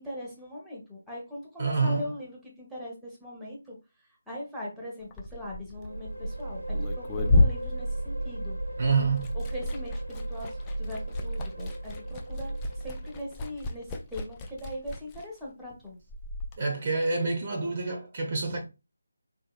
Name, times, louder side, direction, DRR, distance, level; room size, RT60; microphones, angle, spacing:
voice 1, 0.0-3.8 4.3-8.6 9.5-10.5 10.8-16.0, left 1 dB, ahead, 0.7 m, -40 dB
voice 2, 1.6-2.0 8.8-9.3 16.6-18.6, right 4 dB, 35° right, 0.6 m, -27 dB
Liquid, 5.0-8.7 9.0-16.6, left 2 dB, 15° left, 0.3 m, -31 dB
sound 1, 5.7-13.6, right 1 dB, 90° right, 0.8 m, -35 dB
3.7 x 2.7 x 2.2 m
figure-of-eight pair, 155°, 0 cm